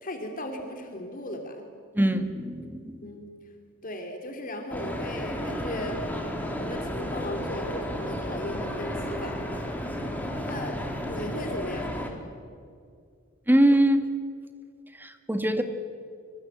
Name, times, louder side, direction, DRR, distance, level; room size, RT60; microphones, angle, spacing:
voice 1, 0.0-1.7 3.0-3.3 3.8-6.0 6.4-9.4 10.4-10.8 11.0-12.1, left 1 dB, 40° left, 4 dB, 3.0 m, -36 dB
voice 2, 1.9-3.0 13.5-14.0 15.0-15.6, right 1 dB, 10° right, 8 dB, 1.9 m, -22 dB
sound 1, 4.7-12.1, equal, 10° left, 3.7 m, -33 dB
26.5 x 25.5 x 8.2 m, 2.2 s
head